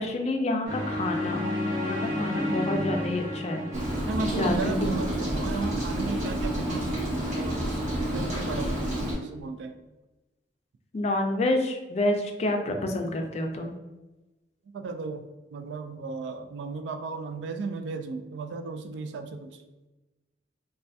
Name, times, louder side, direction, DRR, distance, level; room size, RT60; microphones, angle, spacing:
voice 1, 0.0-1.4 1.8-3.7 4.3-4.8 10.9-13.8, left 1 dB, 40° left, 3 dB, 0.4 m, -28 dB
sound 1, 0.6-4.8, left 1 dB, 65° right, 1.5 m, -31 dB
Rain, 3.7-9.1, right 1 dB, 45° right, 1.0 m, -29 dB
voice 2, 4.1-7.7 8.0-8.8 9.2-9.8 14.7-19.6, right 3 dB, 80° right, 7 dB, 0.3 m, -35 dB
3.2 x 2.2 x 2.6 m, 1.1 s
head